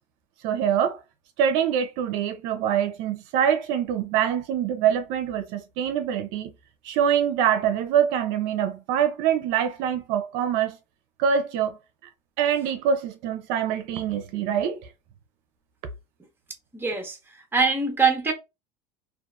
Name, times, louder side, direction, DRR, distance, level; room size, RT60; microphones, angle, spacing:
voice 1, 0.4-1.0 1.4-6.5 6.8-10.8 11.2-11.8 12.4-14.8, right 8 dB, 65° right, 0.5 m, -24 dB
voice 2, 16.7-18.3, right 4 dB, 10° right, 0.8 m, -24 dB
2.7 x 2.4 x 2.2 m
supercardioid pair, 110°, 21 cm